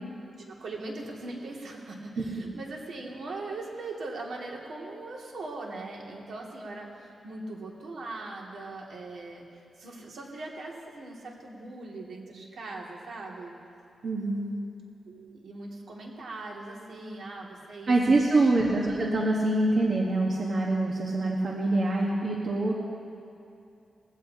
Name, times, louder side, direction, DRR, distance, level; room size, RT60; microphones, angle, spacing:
voice 1, 0.4-9.4 9.8-13.5 15.1-17.9 18.2-18.7, right 2 dB, 75° right, -2 dB, 2.2 m, -40 dB
voice 2, 14.0-14.6 17.9-22.8, right 2 dB, 45° right, -2 dB, 1.2 m, -25 dB
20.5 x 16.0 x 2.8 m, 2.6 s
wide cardioid pair, 180°, 0 cm